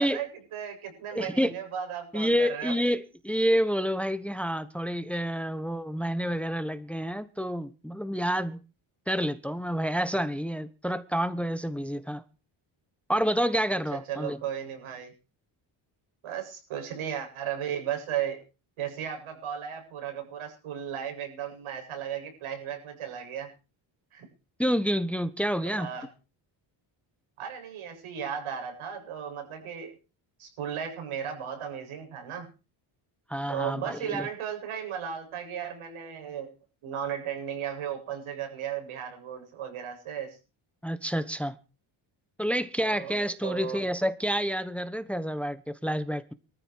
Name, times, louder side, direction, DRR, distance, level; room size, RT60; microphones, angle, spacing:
voice 1, 0.0-2.7 13.9-15.1 16.2-18.4 18.8-23.5 24.1-24.3 25.7-26.1 27.4-29.9 30.4-32.5 33.5-36.5 36.8-40.4 42.8-43.8, right 9 dB, 80° right, 7.8 m, -35 dB
voice 2, 1.1-1.5 2.1-8.6 9.1-12.2 13.1-14.4 24.6-25.9 33.3-34.3 40.8-41.5 42.4-46.3, equal, 5° left, 1.3 m, -28 dB
20.0 x 14.0 x 4.8 m
cardioid pair, 85°, 49 cm